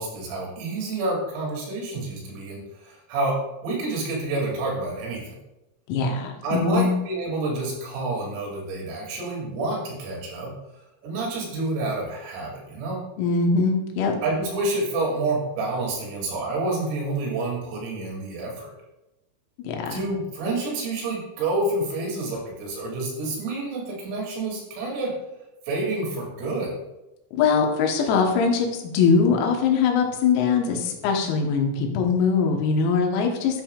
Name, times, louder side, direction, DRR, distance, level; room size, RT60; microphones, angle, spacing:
voice 1, 0.0-5.4 6.4-10.5 11.0-13.0 14.2-18.7 19.8-25.1 25.7-26.8, right 2 dB, 90° right, -3 dB, 5.5 m, -28 dB
voice 2, 5.9-6.9 13.2-14.1 19.7-20.0 27.3-33.6, left 5 dB, 85° left, 2 dB, 3.9 m, -22 dB
12.0 x 8.8 x 2.4 m, 0.96 s
omnidirectional pair, 5.9 m